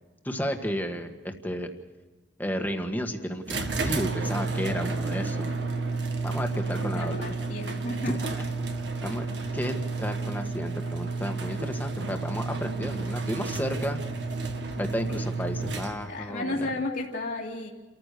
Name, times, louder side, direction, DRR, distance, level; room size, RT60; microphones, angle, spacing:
voice 1, 0.2-1.7 2.4-5.5 6.2-7.1 8.0-8.4 9.0-9.2 9.5-14.0 14.8-16.7, equal, 10° left, 5 dB, 1.7 m, -32 dB
sound 1, 3.5-16.3, right 3 dB, 65° right, 1.9 m, -31 dB
voice 2, 4.8-5.2 5.5-5.6 6.5-8.2 15.1-15.3 16.0-17.7, left 2 dB, 60° left, -5 dB, 2.4 m, -34 dB
30.0 x 14.5 x 6.8 m, 1.2 s
head